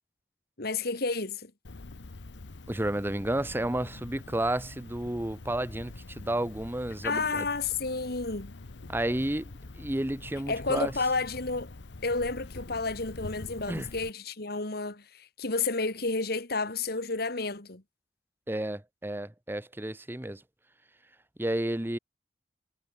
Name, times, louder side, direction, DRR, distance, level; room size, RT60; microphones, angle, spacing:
voice 1, 0.6-1.5 7.0-8.5 10.5-11.7 12.0-17.8, left 3 dB, 60° left, 2.5 m, -31 dB
Cricket, 1.6-14.1, left 2 dB, 75° left, 1.0 m, -45 dB
voice 2, 2.7-7.5 8.9-9.5 9.8-10.9 13.7-13.9 18.5-20.4 21.4-22.0, right 1 dB, 10° right, 1.0 m, -31 dB
head